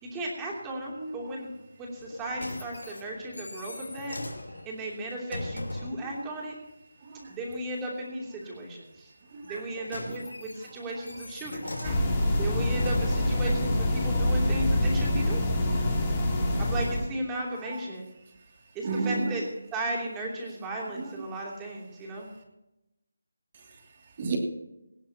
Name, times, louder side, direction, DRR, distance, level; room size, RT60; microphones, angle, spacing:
voice 1, 0.0-1.5 1.8-4.2 4.6-6.6 7.3-9.1 9.4-11.8 12.4-15.5 16.6-18.1 18.7-19.4 19.7-22.3, right 1 dB, 10° right, -2 dB, 3.0 m, -35 dB
voice 2, 0.9-1.4 6.0-6.3 7.0-7.4 9.3-9.6 10.1-10.2 10.7-10.8 11.6-12.0 12.7-12.9 14.1-14.6 15.7-16.1 17.6-17.8 18.8-19.4 21.0-21.2 23.5-24.4, right 3 dB, 30° right, 2 dB, 2.7 m, -36 dB
sound 1, 2.0-6.1 9.4-13.6 14.3-14.4, left 2 dB, 90° left, 2.7 m, -39 dB
sound 2, 11.8-17.1, left 1 dB, 15° left, 3.1 m, -26 dB
18.5 x 16.5 x 2.9 m, 0.92 s
figure-of-eight pair, 170°, 0 cm